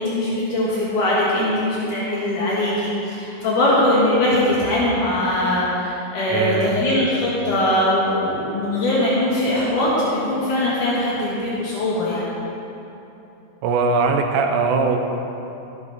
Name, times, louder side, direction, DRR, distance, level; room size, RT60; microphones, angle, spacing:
voice 1, 0.0-12.3, left 1 dB, 75° left, -7 dB, 3.2 m, -21 dB
voice 2, 6.3-6.8 13.6-15.0, right 4 dB, 75° right, 4 dB, 2.2 m, -20 dB
14.5 x 10.5 x 4.1 m, 3.0 s
omnidirectional pair, 3.7 m